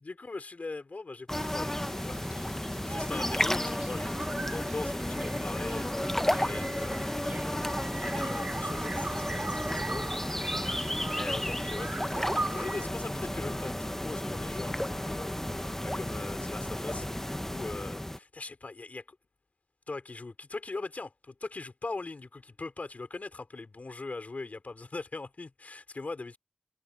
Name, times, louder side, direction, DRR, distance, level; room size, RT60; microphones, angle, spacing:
voice 1, 0.0-2.3 2.8-10.1 11.1-19.2 19.9-26.4, left 3 dB, 90° left, 3.3 m, -41 dB
sound 1, 1.3-18.2, left 1 dB, 15° left, 1.0 m, -33 dB
sound 2, 1.4-12.9, right 2 dB, 65° right, 3.6 m, -40 dB
wide cardioid pair, 65°, 3 cm